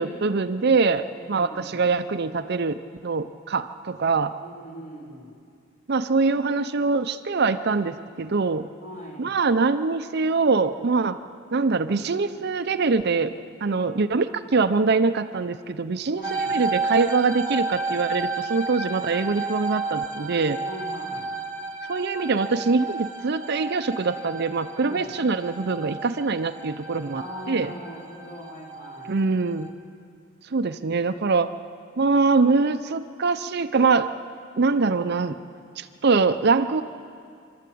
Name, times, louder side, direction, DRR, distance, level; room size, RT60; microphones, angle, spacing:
voice 1, 0.0-4.3 5.9-8.7 9.2-11.2 11.5-13.3 13.6-20.6 21.9-27.2 27.5-27.7 29.1-29.7 30.5-31.5 32.0-34.1 34.6-35.4 35.8-36.8, right 4 dB, 55° right, 11 dB, 0.6 m, -23 dB
voice 2, 1.2-1.8 4.4-5.3 8.8-9.4 16.0-16.6 20.6-21.3 24.8-25.1 27.1-29.2, equal, 40° left, -4 dB, 5.1 m, -40 dB
sound 1, 16.2-29.7, right 3 dB, 20° right, 1.5 m, -32 dB
27.0 x 12.5 x 8.5 m, 2.3 s
head